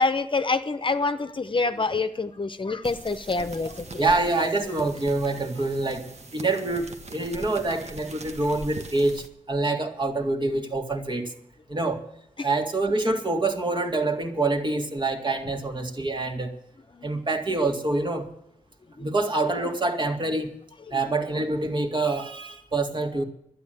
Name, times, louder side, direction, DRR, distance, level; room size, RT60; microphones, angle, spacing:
voice 1, 0.0-4.0 12.4-12.5 16.9-17.1 19.0-19.1 20.9-21.0, left 3 dB, 40° left, 10 dB, 0.8 m, -26 dB
sound 1, 2.8-9.3, right 2 dB, 55° right, 1.4 m, -42 dB
voice 2, 4.0-11.3 11.7-12.0 12.4-16.6 17.0-18.3 19.0-20.5 20.9-23.2, right 2 dB, 35° right, 4 dB, 2.1 m, -26 dB
12.0 x 9.4 x 9.2 m, 0.74 s
wide cardioid pair, 95°, 13 cm